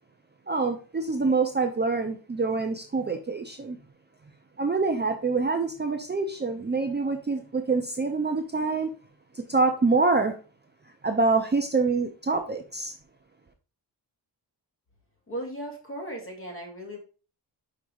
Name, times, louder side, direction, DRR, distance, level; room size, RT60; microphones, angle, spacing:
voice 1, 0.5-3.8 4.6-8.9 9.3-10.3 11.0-12.9, right 4 dB, 25° right, 5 dB, 0.6 m, -26 dB
voice 2, 15.3-17.0, right 1 dB, 30° left, 0 dB, 2.4 m, -36 dB
5.2 x 5.1 x 4.6 m, 0.38 s
wide cardioid pair, 120°, 43 cm